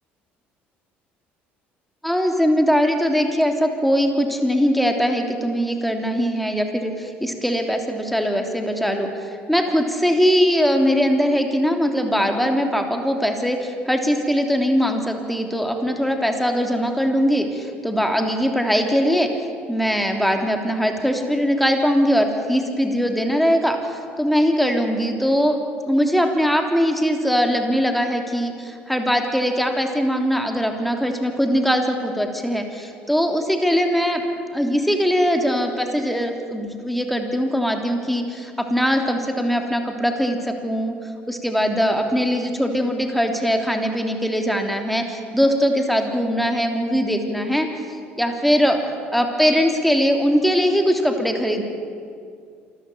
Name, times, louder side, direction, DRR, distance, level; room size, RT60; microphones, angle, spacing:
voice 1, 2.0-19.3 19.7-25.6 25.9-34.2 34.5-40.9 41.3-47.7 48.2-48.8 49.1-51.6, equal, ahead, 4 dB, 3.3 m, -21 dB
26.5 x 14.0 x 8.6 m, 2.3 s
hypercardioid pair, 55°, 6 cm